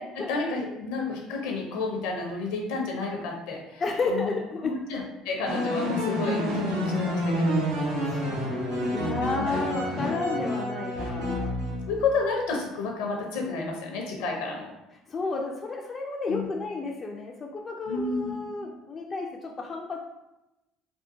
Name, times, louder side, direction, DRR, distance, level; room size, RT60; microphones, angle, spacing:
voice 1, 0.1-4.3 4.6-7.6 9.2-9.4 11.1-11.5 11.9-14.8 16.3-16.5 17.9-18.4, left 3 dB, 70° left, 1 dB, 0.7 m, -31 dB
voice 2, 3.8-4.7 7.9-8.6 8.9-11.5 15.1-20.0, left 3 dB, 35° left, 0 dB, 0.4 m, -32 dB
sound 1, 5.5-12.1, equal, 85° right, 1.0 m, -28 dB
3.5 x 2.4 x 2.7 m, 0.95 s
hypercardioid pair, 60°, 0 cm